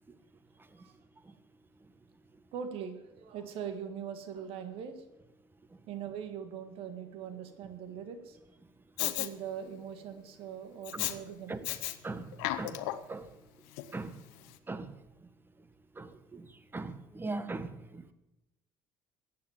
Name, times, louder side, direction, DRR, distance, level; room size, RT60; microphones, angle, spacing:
voice 1, 2.5-5.0 5.9-8.4 9.0-11.6, right 8 dB, 70° right, 1.8 m, -41 dB
Respiratory sounds, 9.0-9.3 10.8-11.1 11.6-12.0 12.3-13.1 13.8-13.9, left 17 dB, 85° left, 0.7 m, -33 dB
voice 2, 16.0-16.5 16.7-18.1, right 3 dB, 20° right, 1.3 m, -39 dB
15.0 x 8.7 x 7.4 m
supercardioid pair, 75°, 10 cm